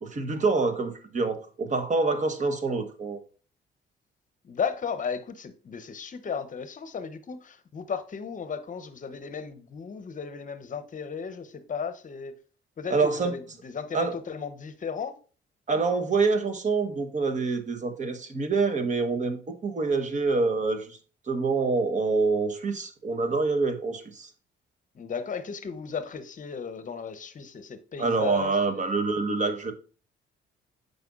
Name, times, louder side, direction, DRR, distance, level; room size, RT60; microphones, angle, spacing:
voice 1, 0.0-3.2 12.9-13.3 13.9-14.2 15.7-21.0 21.3-24.3 28.0-29.7, right 4 dB, 40° right, 1.1 m, -26 dB
voice 2, 4.4-12.3 12.8-15.2 24.9-28.8, left 6 dB, 40° left, 0.8 m, -35 dB
7.7 x 5.2 x 2.4 m
cardioid pair, 90°, 20 cm